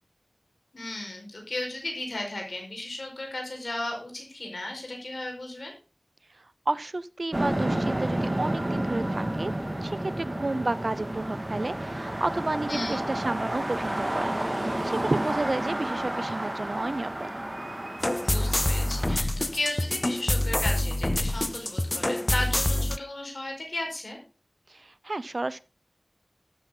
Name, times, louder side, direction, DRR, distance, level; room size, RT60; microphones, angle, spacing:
voice 1, 0.7-5.7 12.7-13.0 18.2-24.2, left 1 dB, 90° left, 1 dB, 4.8 m, -35 dB
voice 2, 6.7-9.5 9.8-14.3 14.6-17.3 24.7-25.6, right 2 dB, 65° right, 18 dB, 0.6 m, -31 dB
sound 1, 7.3-19.2, right 1 dB, 35° right, 1.9 m, -31 dB
sound 2, 18.0-23.0, left 1 dB, 35° left, 0.4 m, -26 dB
13.0 x 9.4 x 3.8 m, 0.33 s
wide cardioid pair, 45°, 0 cm